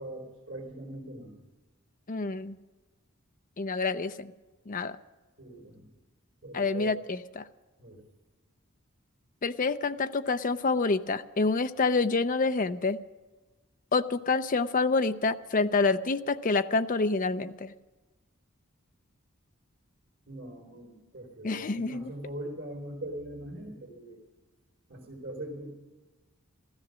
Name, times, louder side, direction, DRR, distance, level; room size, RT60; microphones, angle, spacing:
voice 1, 0.0-1.4 5.4-5.9 6.4-6.9 7.8-8.0 20.3-24.2 24.9-25.7, right 1 dB, 50° right, -1 dB, 3.3 m, -41 dB
voice 2, 2.1-2.6 3.6-4.3 4.7-5.0 6.5-7.4 9.4-13.0 13.9-17.7 21.4-22.1, left 3 dB, 40° left, 10 dB, 0.6 m, -27 dB
15.5 x 13.5 x 6.2 m, 1.2 s
head